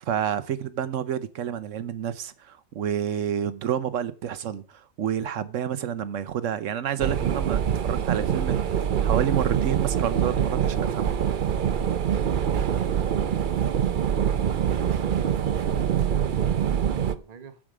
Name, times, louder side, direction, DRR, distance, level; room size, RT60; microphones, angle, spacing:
voice 1, 0.0-8.7 9.0-11.1, right 9 dB, 70° right, 1.2 m, -29 dB
sound 1, 7.0-17.1, right 8 dB, 50° right, 0.7 m, -24 dB
voice 2, 16.3-17.6, right 6 dB, 35° right, 1.1 m, -49 dB
13.5 x 5.1 x 4.9 m
omnidirectional pair, 1.4 m